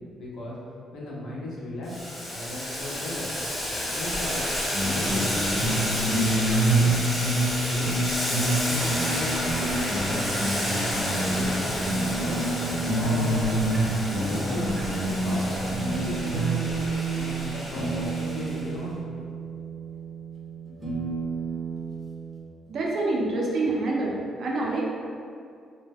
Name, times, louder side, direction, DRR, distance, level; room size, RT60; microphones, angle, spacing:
voice 1, 0.1-0.6 0.9-2.0 2.3-3.3 3.9-4.5 4.8-7.0 7.4-7.9 8.3-10.3 10.6-12.4 12.9-14.7 15.2-15.5 15.9-19.1, left 1 dB, 75° left, -6 dB, 0.7 m, -36 dB
Boiling, 1.9-18.6, equal, 35° left, 1.0 m, -31 dB
sound 1, 4.7-22.4, right 2 dB, 15° right, 0.7 m, -28 dB
voice 2, 22.7-24.8, right 2 dB, 60° right, -3 dB, 0.5 m, -26 dB
2.1 x 2.1 x 3.4 m, 2.3 s
cardioid pair, 90°, 0 cm